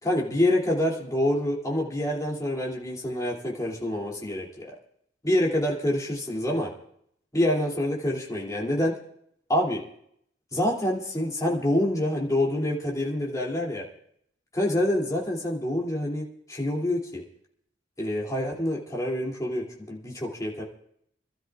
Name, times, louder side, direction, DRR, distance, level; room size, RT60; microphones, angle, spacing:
voice 1, 0.0-4.7 5.2-6.7 7.3-8.9 9.5-9.8 10.5-13.9 14.5-17.2 18.0-20.6, left 1 dB, 20° left, -3 dB, 2.8 m, -26 dB
29.5 x 12.5 x 2.4 m, 0.69 s
head